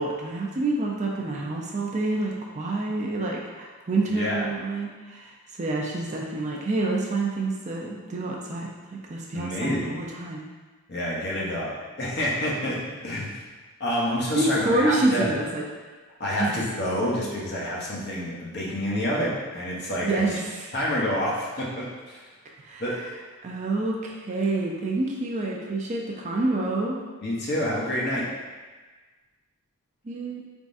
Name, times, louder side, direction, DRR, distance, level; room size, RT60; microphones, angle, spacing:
voice 1, 0.0-5.3 5.6-10.4 14.3-15.6 16.4-16.5 20.0-20.7 22.6-22.8 23.4-27.0 30.1-30.4, right 2 dB, 35° right, -1 dB, 0.4 m, -27 dB
voice 2, 4.1-4.4 9.3-10.0 10.9-13.4 13.8-15.3 16.2-20.4 20.7-22.3 22.8-23.0 27.2-28.3, equal, 50° left, -5 dB, 0.9 m, -28 dB
4.1 x 3.5 x 2.6 m, 1.3 s
head